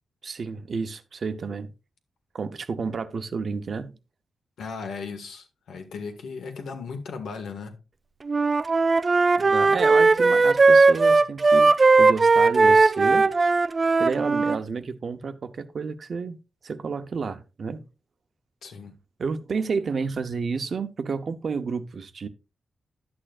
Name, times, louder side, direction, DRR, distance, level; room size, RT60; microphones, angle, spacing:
voice 1, 0.2-1.7 2.3-4.0 9.4-11.7 12.0-13.3 14.0-16.4 16.6-17.8 19.2-22.3, right 5 dB, 45° right, 0.7 m, -30 dB
voice 2, 4.6-7.8 18.6-18.9, left 5 dB, 90° left, 1.7 m, -36 dB
Wind instrument woodwind instrument, 8.3-14.6, right 3 dB, 25° right, 0.3 m, -18 dB
11.0 x 8.7 x 2.5 m
wide cardioid pair, 170°, 0 cm